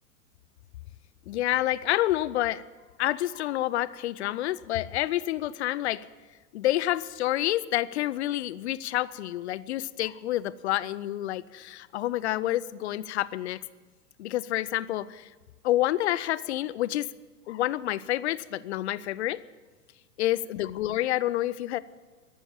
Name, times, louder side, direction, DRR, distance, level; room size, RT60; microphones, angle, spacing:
voice 1, 1.3-2.6 3.0-6.1 6.5-13.6 14.2-15.3 15.6-17.1 17.5-19.4 20.2-21.8, left 14 dB, 45° left, 19 dB, 0.6 m, -28 dB
14.0 x 11.5 x 8.8 m, 1.3 s
figure-of-eight pair, 105°, 48 cm